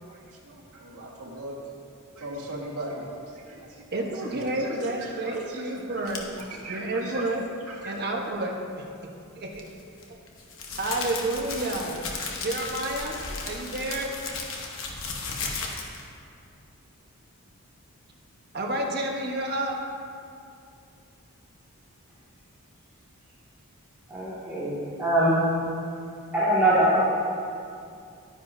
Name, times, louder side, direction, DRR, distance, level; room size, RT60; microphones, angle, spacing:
voice 1, 0.0-1.6 2.2-3.8 4.6-5.6 5.9-6.1 6.4-7.2 7.7-7.9, right 1 dB, 80° right, -3 dB, 1.9 m, -39 dB
voice 2, 3.9-6.3 6.7-7.4 7.8-8.5 9.4-9.7 10.1-10.2 10.8-12.0 12.4-14.1 18.5-19.7, right 2 dB, 45° right, 0 dB, 1.1 m, -30 dB
sound 1, 6.1-6.4 9.5-16.1, left 4 dB, 60° left, 1.1 m, -35 dB
voice 3, 24.1-24.7 25.0-25.4 26.3-27.0, right 1 dB, 10° right, -12 dB, 2.1 m, -22 dB
11.5 x 9.7 x 2.7 m, 2.5 s
head